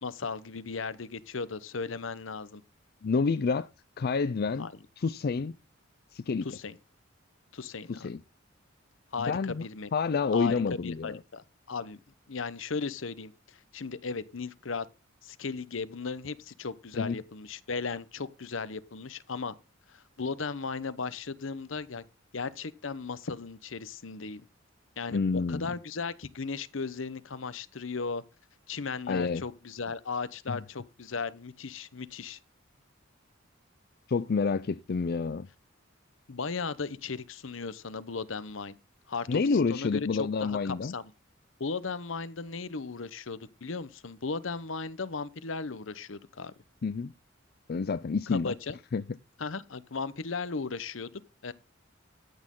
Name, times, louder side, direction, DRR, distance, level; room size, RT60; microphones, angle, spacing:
voice 1, 0.0-2.6 4.6-4.7 6.4-6.8 7.5-8.1 9.1-9.9 10.3-12.0 12.3-14.9 15.2-19.5 19.9-22.0 22.3-24.4 25.0-28.2 28.7-32.4 36.3-38.8 39.1-39.4 39.7-41.1 41.6-46.5 48.3-48.8 49.4-51.1 51.4-51.5, left 4 dB, 70° left, 0.9 m, -36 dB
voice 2, 3.0-3.7 4.0-4.7 5.0-5.6 6.1-6.5 7.9-8.2 9.2-9.7 9.9-11.2 16.9-17.2 25.1-25.7 29.1-29.4 30.5-30.6 34.1-35.5 39.3-40.9 46.8-47.1 47.7-48.5 48.9-49.0, left 4 dB, 50° left, 0.4 m, -28 dB
13.0 x 8.5 x 3.8 m
head